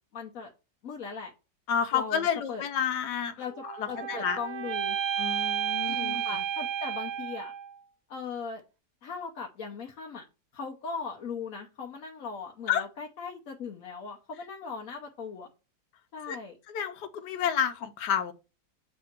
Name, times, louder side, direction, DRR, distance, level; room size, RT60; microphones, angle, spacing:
voice 1, 0.1-0.5 0.8-1.3 1.9-2.6 3.4-5.0 5.8-7.5 8.1-8.6 9.0-10.3 10.5-15.5 16.1-16.5, left 5 dB, 60° left, 1.2 m, -39 dB
voice 2, 1.7-3.3 3.8-4.4 5.2-6.2 12.7-12.8 16.3-16.4 16.7-18.3, left 8 dB, 90° left, 1.4 m, -30 dB
sound 1, 3.5-7.8, right 9 dB, 75° right, 1.3 m, -32 dB
7.4 x 2.7 x 5.8 m
omnidirectional pair, 1.7 m